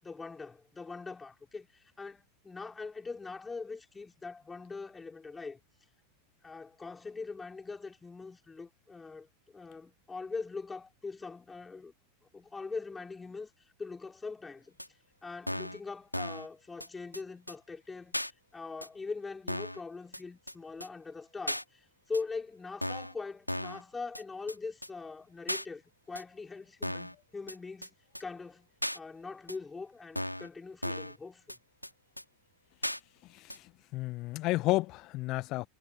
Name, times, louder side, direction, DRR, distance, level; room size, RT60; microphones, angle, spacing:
voice 1, 0.0-5.6 6.4-11.9 12.3-13.5 13.8-14.8 15.2-21.8 22.1-28.7 28.9-31.5, left 4 dB, 15° left, 5.3 m, -42 dB
sound 1, 14.8-14.9 15.5-15.8 16.1-16.5 16.8-16.9 17.1-17.2 17.5-17.6 18.1-18.3 18.8-18.9 19.5-19.8 20.1-20.2 20.5-20.6 20.8-20.9 21.5-21.6 22.1-22.2 22.8-23.1 23.5-23.8 24.1-24.2 24.5-24.6 24.8-24.9 25.5-25.7 26.2-26.3 26.8-27.1 27.5-27.6 27.8-27.9 28.2-28.3 28.8-29.0 29.5-29.6 30.2-30.5 30.8-31.2 31.5-31.6 31.8-31.9 32.2-32.3 32.8-33.0 33.5-33.6, left 1 dB, 90° left, 3.0 m, -35 dB
voice 2, 33.3-33.6 33.9-35.7, left 19 dB, 40° left, 1.6 m, -31 dB
figure-of-eight pair, 85°, 0 cm